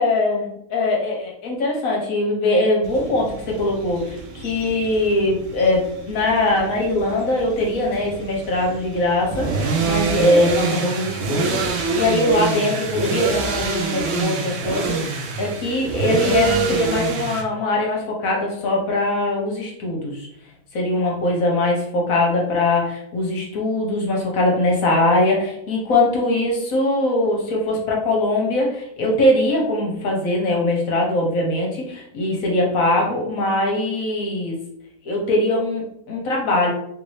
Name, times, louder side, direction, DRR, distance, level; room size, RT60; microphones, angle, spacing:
voice 1, 0.0-20.3 20.7-34.6 35.0-36.7, left 1 dB, 60° left, -1 dB, 1.1 m, -21 dB
sound 1, 2.8-17.4, right 4 dB, 80° right, 0.5 m, -27 dB
3.2 x 2.6 x 3.1 m, 0.75 s
omnidirectional pair, 1.8 m